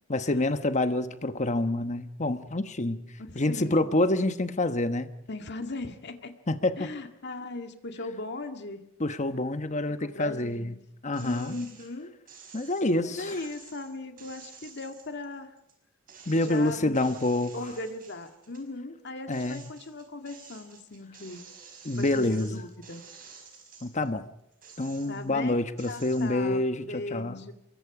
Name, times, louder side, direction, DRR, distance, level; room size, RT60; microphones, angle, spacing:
voice 1, 0.1-3.0 3.3-5.1 6.5-6.9 9.0-10.8 11.0-11.5 12.5-13.3 16.3-17.5 19.3-19.7 21.8-22.6 23.8-24.3 24.8-27.4, left 2 dB, 35° left, 10 dB, 1.2 m, -27 dB
voice 2, 3.2-3.9 5.3-6.4 6.8-8.9 10.0-10.9 11.2-12.1 13.0-15.5 16.3-17.0 17.5-21.4 21.9-23.0 25.1-27.5, left 2 dB, 55° left, 6 dB, 2.0 m, -38 dB
sound 1, 11.1-11.9 12.3-15.7 16.1-18.7 19.1-24.1 24.5-25.4 25.8-26.3, right 6 dB, 45° right, 5.4 m, -51 dB
26.0 x 23.0 x 5.0 m, 0.84 s
head